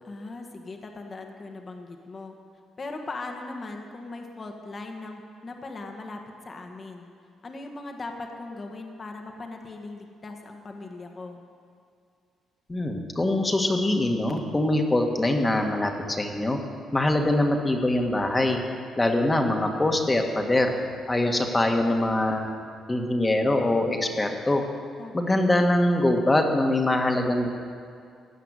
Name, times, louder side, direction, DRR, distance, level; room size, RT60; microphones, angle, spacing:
voice 1, 0.0-2.3 2.8-7.0 7.4-11.4 25.0-25.5, left 3 dB, 35° left, 3 dB, 1.5 m, -39 dB
voice 2, 12.7-16.6 16.9-18.6 19.0-20.7 21.1-22.5 22.9-24.6 25.1-27.5, left 1 dB, 20° left, 3 dB, 1.6 m, -23 dB
16.5 x 5.9 x 9.7 m, 2.3 s
cardioid pair, 90°, 0 cm